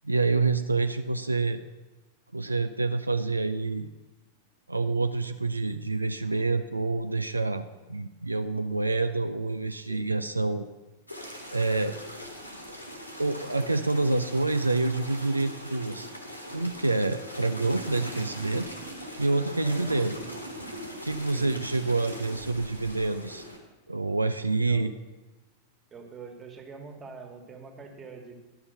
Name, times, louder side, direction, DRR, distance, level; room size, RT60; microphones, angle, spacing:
voice 1, 0.0-1.6 2.3-3.9 4.7-7.6 7.9-10.7 11.5-12.0 13.2-16.1 16.5-18.7 19.2-20.2 21.0-23.5 23.9-24.9, right 3 dB, 85° right, 9 dB, 0.4 m, -27 dB
sound 1, 11.1-23.6, equal, 90° left, 1.7 m, -41 dB
voice 2, 19.6-19.9 21.3-21.6 24.6-24.9 25.9-28.3, right 4 dB, 20° right, 3 dB, 1.6 m, -44 dB
11.0 x 5.6 x 6.6 m, 1.1 s
figure-of-eight pair, 90°, 0 cm